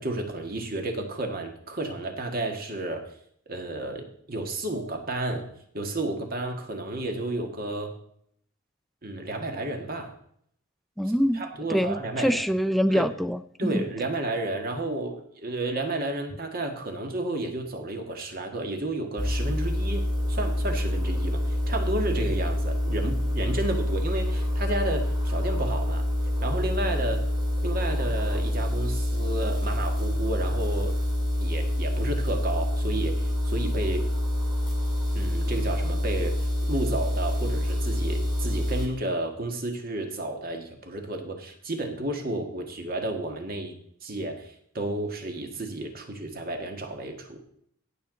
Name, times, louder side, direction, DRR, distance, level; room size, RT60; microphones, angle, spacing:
voice 1, 0.0-3.1 3.5-5.5 5.7-7.9 9.0-10.1 11.1-12.4 12.9-13.1 13.6-26.1 26.4-27.2 27.6-31.0 31.4-34.1 35.1-36.4 36.7-47.4, right 2 dB, 45° right, 4 dB, 1.8 m, -32 dB
voice 2, 11.0-11.4 11.7-13.8, equal, ahead, 10 dB, 0.3 m, -25 dB
sound 1, 19.2-38.9, left 1 dB, 20° right, 2.5 m, -27 dB
17.5 x 6.5 x 4.0 m, 0.68 s
head